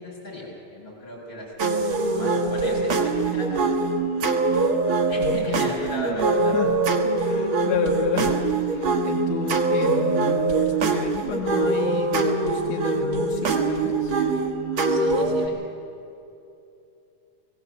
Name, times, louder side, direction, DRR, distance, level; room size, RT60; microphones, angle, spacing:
voice 1, 0.0-3.8 5.1-6.7 14.8-15.6, left 1 dB, 15° left, -4 dB, 7.1 m, -36 dB
sound 1, 1.6-15.5, right 3 dB, 60° right, 1.4 m, -23 dB
voice 2, 5.2-5.8 6.5-6.7 7.0-14.2, left 6 dB, 70° left, 2 dB, 1.7 m, -31 dB
19.5 x 16.5 x 8.2 m, 2.7 s
omnidirectional pair, 3.8 m